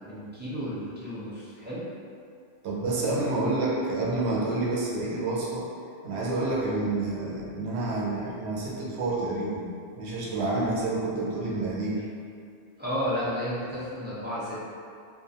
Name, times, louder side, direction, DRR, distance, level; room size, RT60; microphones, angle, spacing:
voice 1, 0.0-1.9 12.8-14.6, equal, 15° right, -12 dB, 0.4 m, -32 dB
voice 2, 2.6-5.7 6.0-9.7 10.0-12.1, right 2 dB, 80° right, -5 dB, 0.9 m, -28 dB
2.4 x 2.1 x 2.7 m, 2.4 s
omnidirectional pair, 1.1 m